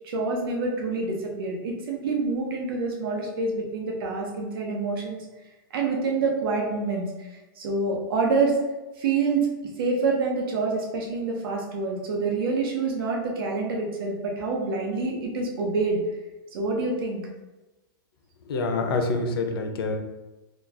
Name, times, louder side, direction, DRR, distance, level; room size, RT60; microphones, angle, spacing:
voice 1, 0.0-5.2 5.7-8.6 9.0-9.5 9.8-16.0 16.5-17.2, right 3 dB, 75° right, -1 dB, 0.9 m, -27 dB
voice 2, 18.5-20.0, left 3 dB, 85° left, 4 dB, 0.6 m, -26 dB
3.0 x 2.3 x 3.5 m, 1.1 s
supercardioid pair, 155°, 12 cm